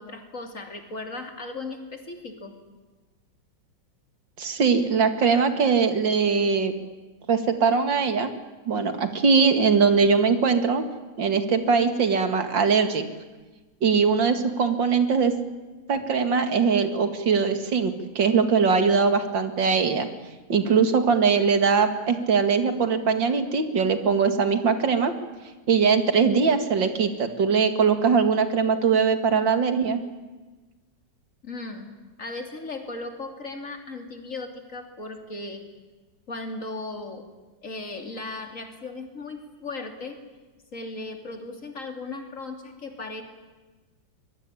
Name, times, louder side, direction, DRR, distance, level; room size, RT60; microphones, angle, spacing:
voice 1, 0.0-2.6 31.4-31.9 32.2-35.6 36.3-37.3 37.6-40.2 40.7-43.2, left 3 dB, 45° left, 5 dB, 3.3 m, -36 dB
voice 2, 4.4-6.7 7.3-8.3 8.7-10.8 11.2-13.0 13.8-15.3 15.9-20.1 20.5-25.1 25.7-30.0, right 5 dB, 80° right, 8 dB, 2.8 m, -21 dB
24.0 x 22.0 x 10.0 m, 1.2 s
omnidirectional pair, 2.0 m